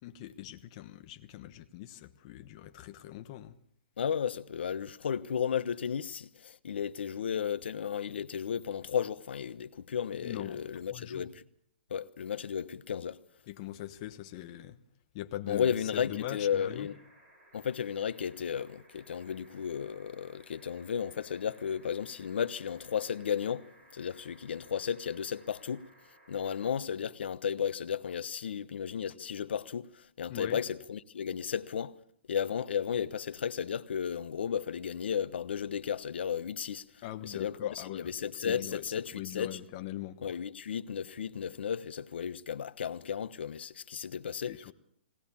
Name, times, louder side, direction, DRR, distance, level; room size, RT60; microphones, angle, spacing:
voice 1, 0.0-3.6 10.2-10.6 10.9-11.3 13.5-14.8 15.1-16.9 30.3-30.6 37.0-38.8 39.1-40.3 44.5-44.7, left 13 dB, 30° left, 1.1 m, -42 dB
voice 2, 4.0-11.3 11.9-13.2 15.5-17.0 17.5-25.8 26.3-32.0 32.3-36.9 37.2-39.6 40.2-44.5, left 8 dB, 75° left, 1.1 m, -34 dB
sound 1, 15.4-26.7 28.1-28.2, right 1 dB, 20° right, 4.4 m, -61 dB
20.5 x 18.0 x 7.2 m
hypercardioid pair, 165°, 6 cm